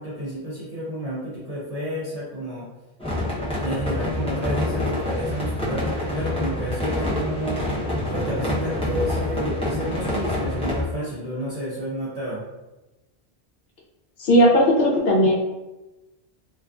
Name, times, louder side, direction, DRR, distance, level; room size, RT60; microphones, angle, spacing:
voice 1, 0.0-2.7 3.6-7.7 8.1-12.4, equal, 50° right, -7 dB, 0.4 m, -30 dB
sound 1, 3.0-10.8, left 1 dB, 10° left, 0.3 m, -26 dB
voice 2, 14.2-15.3, equal, 70° left, -3 dB, 0.8 m, -17 dB
2.4 x 2.3 x 2.2 m, 1.0 s
omnidirectional pair, 1.1 m